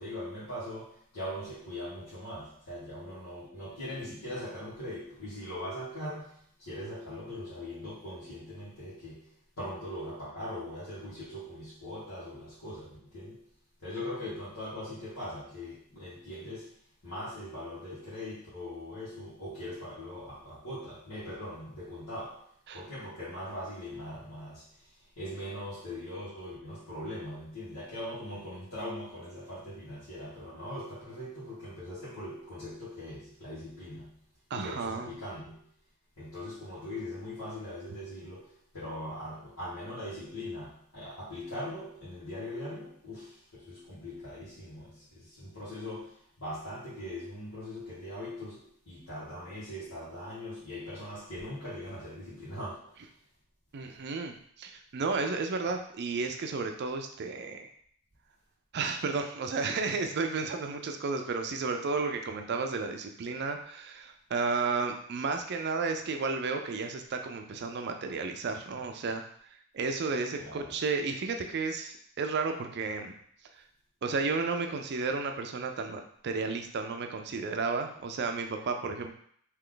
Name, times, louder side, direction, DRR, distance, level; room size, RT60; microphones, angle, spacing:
voice 1, 0.0-13.4 13.8-16.8 17.0-22.4 22.7-34.1 34.5-35.7 36.2-53.0 70.4-70.8, left 1 dB, 85° left, -12 dB, 1.6 m, -41 dB
voice 2, 34.5-35.1 53.7-57.7 58.7-69.2 69.7-73.1 74.0-79.1, right 4 dB, 50° right, 5 dB, 0.4 m, -32 dB
3.3 x 2.9 x 3.8 m, 0.64 s
head